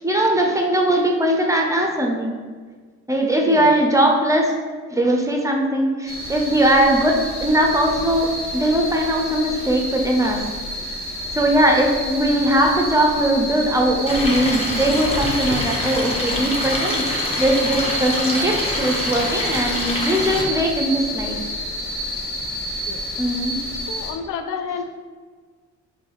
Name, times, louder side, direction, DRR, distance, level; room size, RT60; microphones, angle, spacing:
voice 1, 0.0-2.4 3.1-4.5 4.9-10.4 10.8-10.9 11.3-21.4 23.2-23.6, right 1 dB, 10° right, 1 dB, 0.6 m, -20 dB
sound 1, 6.1-24.1, equal, 45° left, 1.4 m, -29 dB
Stream, 14.1-20.4, left 1 dB, 20° left, 0.9 m, -26 dB
voice 2, 23.9-24.8, left 6 dB, 80° left, 8 dB, 0.5 m, -29 dB
4.6 x 2.7 x 3.1 m, 1.5 s
cardioid pair, 90°, 30 cm